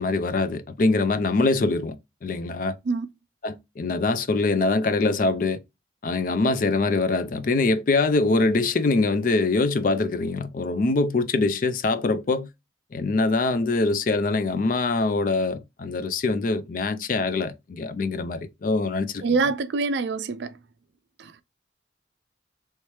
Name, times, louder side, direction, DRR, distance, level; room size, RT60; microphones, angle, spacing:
voice 1, 0.0-2.0 2.2-2.8 3.4-5.6 6.0-12.5 12.9-19.2, left 3 dB, 45° left, 0.4 m, -23 dB
voice 2, 19.2-20.5 21.2-21.3, right 4 dB, 65° right, 0.4 m, -25 dB
3.1 x 3.1 x 3.2 m
head